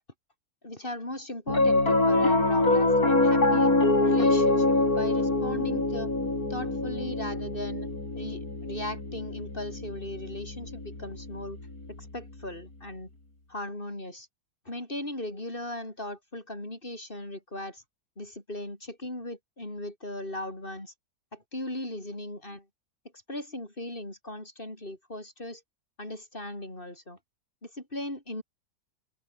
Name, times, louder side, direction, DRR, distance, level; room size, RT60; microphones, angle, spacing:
voice 1, 0.6-3.7 4.0-6.1 6.5-11.6 12.0-13.1 13.5-14.3 14.6-17.8 18.2-20.9 21.3-22.7 23.3-25.6 26.0-27.2 27.6-28.4, left 1 dB, 35° left, 6.3 m, -38 dB
Piano, 1.5-12.0, left 2 dB, 70° left, 6.4 m, -25 dB
open air
omnidirectional pair, 1.6 m